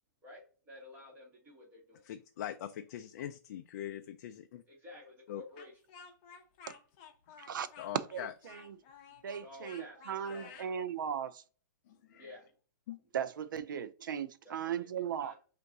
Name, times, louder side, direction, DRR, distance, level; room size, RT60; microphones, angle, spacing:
voice 1, 0.2-2.1 4.7-5.7 9.4-10.8 11.9-12.5 14.4-14.9 15.2-15.3, left 2 dB, 20° right, 1.8 m, -52 dB
voice 2, 2.0-4.6 5.3-5.4 7.8-8.3 12.1-12.3 12.9-13.0, left 11 dB, 50° left, 0.4 m, -42 dB
Speech, 5.6-10.7, left 6 dB, 35° left, 0.7 m, -54 dB
voice 3, 8.1-8.7 9.2-11.4 13.1-15.3, right 8 dB, 80° right, 0.5 m, -37 dB
4.5 x 2.6 x 3.9 m
hypercardioid pair, 155°, 11 cm